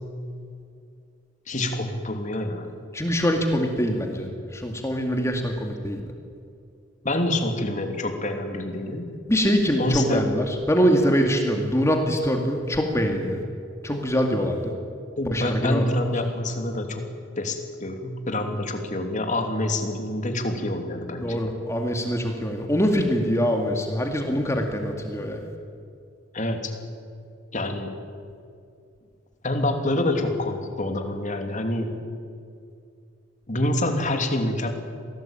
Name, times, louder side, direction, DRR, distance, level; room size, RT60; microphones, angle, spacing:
voice 1, 1.5-2.7 7.0-9.1 9.8-10.3 15.2-17.0 17.4-21.4 26.3-26.7 27.5-27.9 29.4-32.0 33.5-34.7, left 1 dB, 40° left, 5 dB, 3.0 m, -26 dB
voice 2, 2.9-4.3 4.5-6.0 9.3-13.4 13.8-14.7 15.2-15.9 21.2-25.4, equal, 15° left, 3 dB, 2.2 m, -24 dB
27.0 x 18.5 x 9.0 m, 2.4 s
head